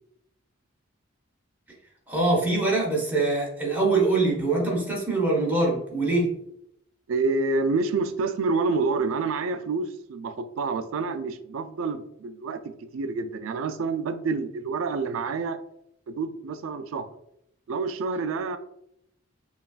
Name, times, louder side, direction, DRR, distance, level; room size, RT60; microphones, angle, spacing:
voice 1, 2.1-6.3, right 2 dB, 10° right, -3 dB, 1.0 m, -23 dB
voice 2, 7.1-12.6 12.9-15.6 16.1-17.1 17.7-18.6, right 4 dB, 85° right, 10 dB, 0.4 m, -28 dB
5.4 x 2.4 x 2.4 m, 0.76 s
head